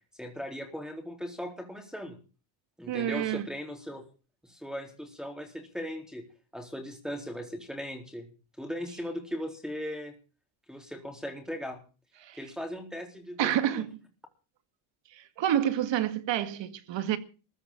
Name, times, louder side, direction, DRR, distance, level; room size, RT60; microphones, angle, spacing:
voice 1, 0.2-2.2 2.8-4.0 4.4-6.2 6.5-8.3 8.6-10.1 10.7-11.8 12.4-13.8, equal, ahead, 3.9 m, -38 dB
voice 2, 2.9-3.5 12.2-12.4 13.4-14.0 15.4-17.2, right 11 dB, 65° right, 2.1 m, -28 dB
15.0 x 9.7 x 8.7 m
cardioid pair, 120°, 47 cm